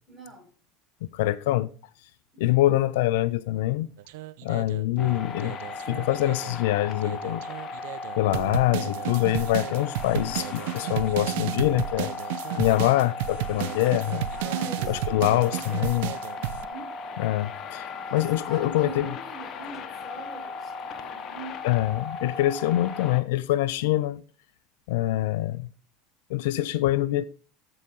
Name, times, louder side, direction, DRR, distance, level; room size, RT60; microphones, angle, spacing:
voice 1, 0.1-0.5 14.3-17.0 17.9-21.6, right 2 dB, 15° right, 5.8 m, -42 dB
voice 2, 1.0-1.7 2.4-3.9 4.4-5.6 5.9-7.5 8.2-12.1 12.6-14.3 14.9-16.1 17.2-17.9 18.1-19.1 21.6-24.2 24.9-25.7 26.3-27.2, left 15 dB, 65° left, 0.4 m, -24 dB
sound 1, 4.0-6.6 7.0-16.6, right 14 dB, 65° right, 0.5 m, -33 dB
sound 2, 5.0-23.2, left 4 dB, 40° left, 1.0 m, -37 dB
13.5 x 4.8 x 4.0 m
figure-of-eight pair, 75°, 0 cm